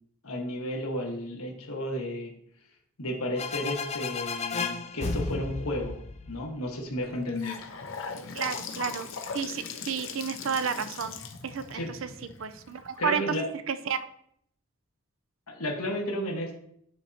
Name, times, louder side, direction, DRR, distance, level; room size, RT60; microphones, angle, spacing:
voice 1, 0.2-2.3 3.0-6.0 6.3-7.6 11.7-11.9 13.0-13.5 15.5-16.6, left 1 dB, 80° left, 0 dB, 1.4 m, -32 dB
sound 1, 3.4-7.0, left 4 dB, 30° left, 0.3 m, -33 dB
Gurgling / Sink (filling or washing) / Bathtub (filling or washing), 7.0-13.1, left 5 dB, 60° left, 0.7 m, -40 dB
voice 2, 8.3-11.2 11.4-12.1 12.4-13.2 13.7-14.0, right 6 dB, 60° right, 10 dB, 0.5 m, -31 dB
9.3 x 4.3 x 2.8 m, 0.69 s
head